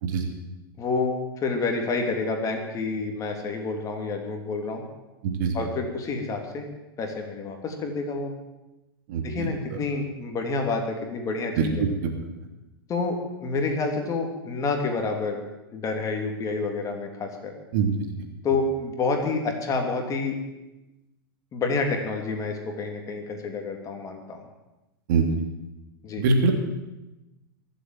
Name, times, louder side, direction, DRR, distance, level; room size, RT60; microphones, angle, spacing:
voice 1, 0.8-4.8 5.5-6.7 7.0-8.3 9.2-11.8 12.9-15.4 15.7-17.5 18.4-20.4 21.5-24.4 26.0-26.2, left 3 dB, 25° left, 3 dB, 3.1 m, -28 dB
voice 2, 5.2-5.5 9.1-9.8 11.6-11.7 12.0-12.1 17.7-17.9 25.1-25.3 26.2-26.5, right 5 dB, 55° right, 3 dB, 3.0 m, -23 dB
23.5 x 7.9 x 7.7 m, 1.0 s
hypercardioid pair, 105°, 12 cm